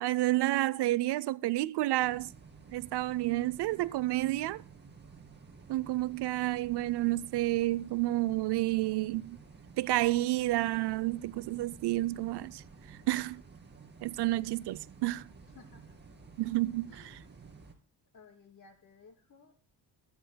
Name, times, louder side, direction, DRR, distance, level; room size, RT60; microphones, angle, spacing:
voice 1, 0.0-2.3 2.7-4.6 5.7-9.4 9.8-12.6 13.1-13.4 14.0-15.2 16.4-16.9, right 17 dB, 65° right, 0.5 m, -30 dB
sound 1, 2.0-17.7, right 5 dB, 25° right, 2.3 m, -53 dB
voice 2, 15.5-16.0 16.9-17.3 18.1-19.5, left 4 dB, 45° left, 3.2 m, -58 dB
25.5 x 9.5 x 2.2 m
cardioid pair, 100°, 43 cm